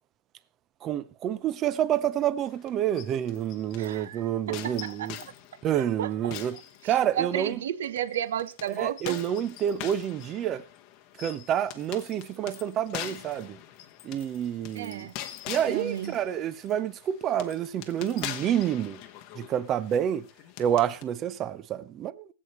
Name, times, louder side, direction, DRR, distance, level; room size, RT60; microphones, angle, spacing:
voice 1, 0.8-5.2 5.6-6.6 6.8-7.6 8.7-10.6 11.2-13.6 14.0-15.1 15.5-19.0 19.4-20.3 20.6-22.3, right 10 dB, 15° right, 0.5 m, -28 dB
sound 1, 2.4-4.0 4.5-7.4 8.0-21.0, left 12 dB, 25° left, 1.0 m, -43 dB
voice 2, 3.8-4.2 4.5-5.1 5.7-6.4 6.8-9.2 14.7-15.1 15.7-16.1, right 10 dB, 55° right, 0.9 m, -33 dB
24.0 x 8.0 x 3.0 m
hypercardioid pair, 175°, 0 cm